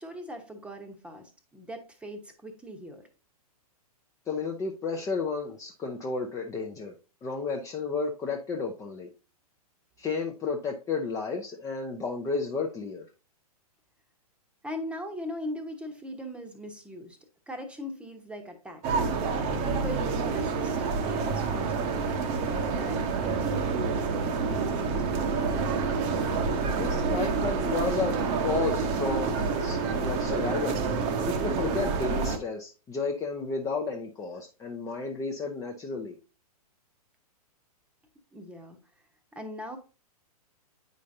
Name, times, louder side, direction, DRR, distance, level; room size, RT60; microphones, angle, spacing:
voice 1, 0.0-3.1 14.6-17.2 17.5-18.8 19.6-22.2 22.8-25.8 38.3-38.8 39.3-39.8, equal, 5° right, 5 dB, 1.0 m, -40 dB
voice 2, 4.3-6.9 7.2-9.1 10.0-13.0 26.8-28.2 28.4-30.8 31.4-36.1, left 4 dB, 15° left, 1 dB, 0.6 m, -32 dB
wroclaw market square, 18.8-32.4, right 4 dB, 35° right, 0.9 m, -28 dB
8.4 x 5.1 x 2.7 m, 0.34 s
hypercardioid pair, 115°, 20 cm